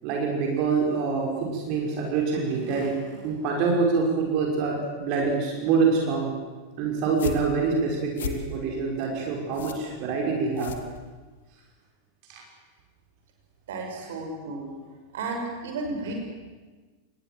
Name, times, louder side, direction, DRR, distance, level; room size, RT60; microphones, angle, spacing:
voice 1, 0.0-6.3 6.8-10.7 12.3-12.4, right 4 dB, 45° right, 0 dB, 5.5 m, -26 dB
sound 1, 7.0-11.5, left 7 dB, 60° left, 2.5 m, -38 dB
voice 2, 13.7-14.7 15.1-16.1, right 3 dB, 60° right, 2 dB, 5.9 m, -33 dB
28.0 x 20.0 x 7.9 m, 1.3 s
figure-of-eight pair, 90°, 0 cm